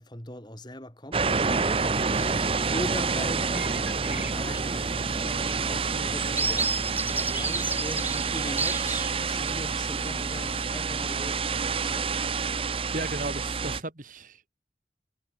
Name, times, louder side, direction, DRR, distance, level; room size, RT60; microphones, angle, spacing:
voice 1, 0.0-12.1, left 1 dB, 25° left, 6.6 m, -40 dB
sound 1, 1.1-13.8, right 5 dB, 30° right, 0.7 m, -28 dB
sound 2, 2.0-2.6 3.0-3.2 3.5-9.5 10.0-10.6, right 4 dB, 10° right, 0.4 m, -33 dB
sound 3, 2.3-11.4, left 1 dB, 45° left, 3.6 m, -50 dB
voice 2, 12.9-14.5, right 2 dB, 50° right, 2.7 m, -35 dB
head